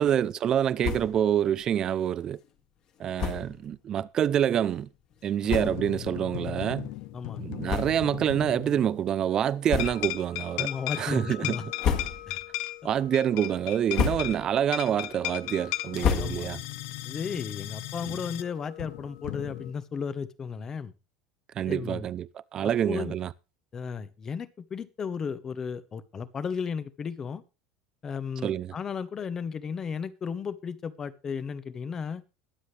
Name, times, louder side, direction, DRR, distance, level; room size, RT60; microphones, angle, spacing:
voice 1, 0.0-2.4 3.0-4.9 5.2-6.9 7.4-10.7 11.0-11.6 12.8-16.6 18.1-18.2 21.6-23.3 28.4-28.8, right 9 dB, 30° right, 0.6 m, -27 dB
sound 1, 0.8-1.3 1.6-1.7 2.0-2.1 3.1-3.6 4.3-4.4 5.1-5.2 5.4-6.0 6.5-6.7 7.6-8.3 8.6-8.8 9.6-10.2 10.7-11.1 11.6-12.5 12.9-13.3 13.7-14.6 14.9-16.8, left 7 dB, 40° left, 2.2 m, -31 dB
sound 2, 5.4-9.1 9.8-19.7, left 15 dB, 65° left, 0.9 m, -37 dB
voice 2, 10.6-11.6 12.3-12.4 16.2-16.5 17.0-20.9 21.7-22.1 22.9-23.2 23.7-27.4 28.0-32.2, left 6 dB, 25° left, 1.0 m, -34 dB
21.5 x 7.8 x 3.3 m
cardioid pair, 150°, 2 cm